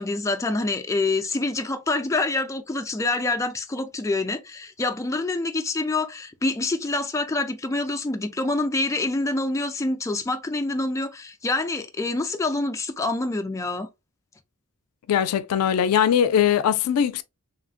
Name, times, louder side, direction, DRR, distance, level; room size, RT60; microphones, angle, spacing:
voice 1, 0.0-13.9, left 2 dB, 15° left, 0.3 m, -26 dB
voice 2, 15.1-17.2, left 9 dB, 85° left, 0.4 m, -21 dB
3.2 x 2.5 x 2.4 m
head